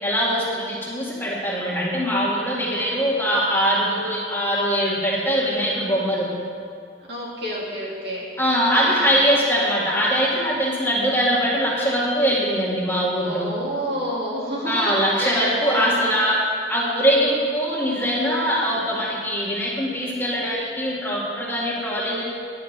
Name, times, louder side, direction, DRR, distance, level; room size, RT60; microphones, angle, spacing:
voice 1, 0.0-6.3 8.4-13.5 14.7-16.4 16.7-22.2, equal, 15° left, -6 dB, 1.9 m, -22 dB
voice 2, 2.7-3.1 7.1-8.3 8.7-9.1 13.2-16.1, equal, 65° right, -5 dB, 2.9 m, -29 dB
10.0 x 6.4 x 7.9 m, 2.2 s
head